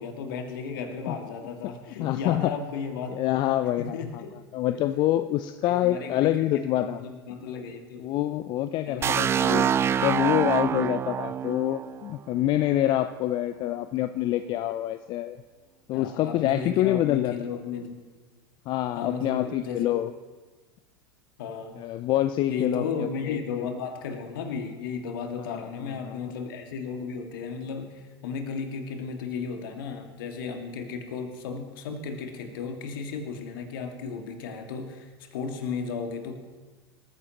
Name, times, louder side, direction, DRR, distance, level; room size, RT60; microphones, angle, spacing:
voice 1, 0.0-3.2 3.8-4.3 5.7-8.1 8.9-9.2 15.9-18.0 19.0-20.0 21.4-21.8 22.5-36.4, left 5 dB, 60° left, 4 dB, 2.1 m, -34 dB
voice 2, 2.0-2.6 3.1-4.2 4.5-7.0 8.0-9.7 10.0-15.4 15.9-17.3 18.7-20.1 21.8-23.7 25.4-26.2, left 13 dB, 35° left, 11 dB, 0.5 m, -26 dB
sound 1, 9.0-12.8, right 8 dB, 20° right, 0.3 m, -26 dB
25.5 x 14.5 x 3.0 m, 1.3 s
figure-of-eight pair, 85°, 13 cm